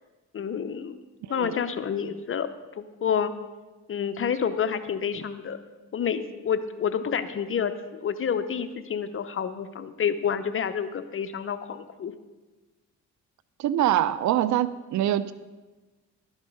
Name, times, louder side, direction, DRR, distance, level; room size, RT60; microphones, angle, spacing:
voice 1, 0.3-1.0 1.3-2.5 2.8-3.3 3.9-5.6 5.9-12.1, left 7 dB, 45° left, 10 dB, 0.7 m, -29 dB
voice 2, 13.6-15.3, right 12 dB, 70° right, 16 dB, 0.5 m, -24 dB
12.0 x 8.1 x 5.3 m, 1.2 s
cardioid pair, 90°, 30 cm